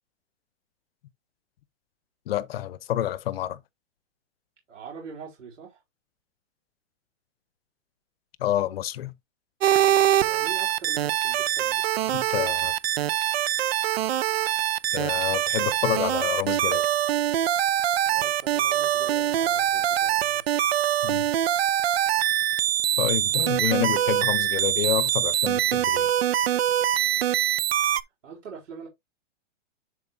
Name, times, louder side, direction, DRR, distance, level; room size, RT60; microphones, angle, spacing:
voice 1, 2.3-3.6 8.4-9.1 12.1-12.7 14.9-16.9 21.0-21.3 23.0-26.1, left 12 dB, 50° left, 0.8 m, -28 dB
voice 2, 4.7-5.8 9.8-11.9 18.1-20.5 28.2-28.9, right 5 dB, 80° right, 4.5 m, -43 dB
sound 1, 9.6-28.0, right 12 dB, 55° right, 0.7 m, -24 dB
11.0 x 4.6 x 2.6 m
hypercardioid pair, 160°, 37 cm